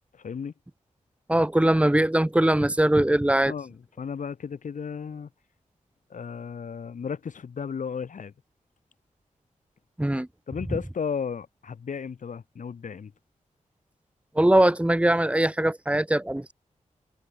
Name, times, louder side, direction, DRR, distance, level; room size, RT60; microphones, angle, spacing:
voice 1, 0.1-0.5 3.4-5.3 6.1-8.3 10.5-13.1, left 6 dB, 75° left, 2.9 m, -34 dB
voice 2, 1.3-3.5 10.0-10.3 14.4-16.5, right 1 dB, 10° right, 2.6 m, -21 dB
wide cardioid pair, 100°, 13 cm